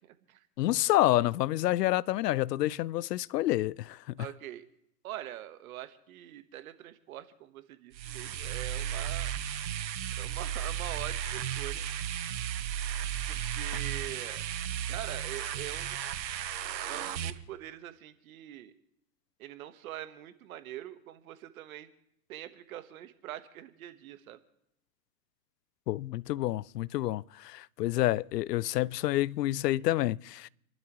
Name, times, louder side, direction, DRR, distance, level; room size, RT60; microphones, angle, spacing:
voice 1, 0.0-0.4 4.2-4.6 5.0-9.3 10.2-11.9 13.3-14.4 14.9-16.0 16.9-18.7 19.4-21.9 22.3-24.4, right 13 dB, 55° right, 1.4 m, -43 dB
voice 2, 0.6-4.3 25.9-30.5, left 15 dB, 70° left, 0.6 m, -28 dB
sound 1, 7.9-17.3, right 10 dB, 85° right, 1.2 m, -34 dB
30.0 x 12.0 x 3.1 m
hypercardioid pair, 140°, 50 cm